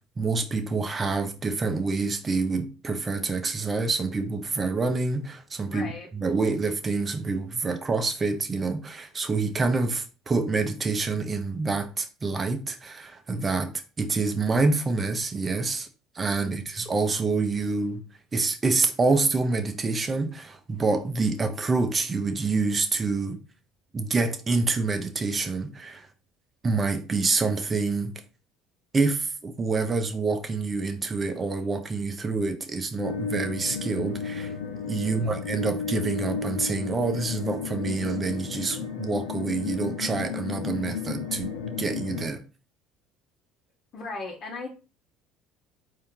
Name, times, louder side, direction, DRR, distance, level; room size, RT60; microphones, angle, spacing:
voice 1, 0.2-13.7 14.0-15.9 16.1-18.0 18.3-23.4 23.9-26.1 26.6-28.1 28.9-34.5 34.9-41.5 41.8-42.4, right 3 dB, 30° right, 0.9 m, -27 dB
voice 2, 5.7-6.1 16.4-16.7 35.0-35.4 43.9-44.7, left 3 dB, 55° left, 1.1 m, -38 dB
sound 1, 33.0-42.3, left 6 dB, 85° left, 0.6 m, -33 dB
4.3 x 2.8 x 3.8 m
supercardioid pair, 80°, 0 cm